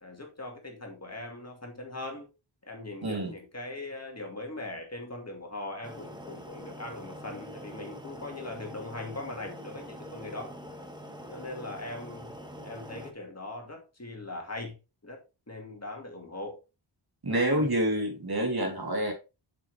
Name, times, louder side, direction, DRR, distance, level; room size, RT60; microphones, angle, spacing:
voice 1, 0.0-2.3 2.6-10.6 11.3-12.4 12.6-14.8 15.0-16.6 17.3-17.8, left 2 dB, 30° left, 2.2 m, -40 dB
voice 2, 3.0-3.3 17.2-19.1, right 1 dB, 50° right, 3.2 m, -27 dB
sound 1, 5.8-13.1, equal, 10° right, 1.3 m, -44 dB
7.2 x 7.1 x 3.4 m
wide cardioid pair, 100°, 47 cm